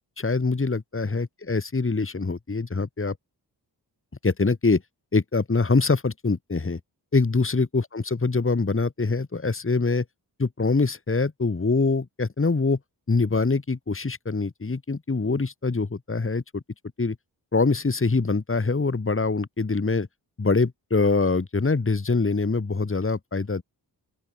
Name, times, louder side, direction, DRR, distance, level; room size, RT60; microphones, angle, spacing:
voice 1, 0.2-3.1 4.2-4.8 5.1-6.8 7.1-10.0 10.4-12.8 13.1-16.6 17.0-17.2 17.5-20.1 20.4-23.6, left 3 dB, 30° left, 2.8 m, -24 dB
open air
cardioid pair, 60°, 41 cm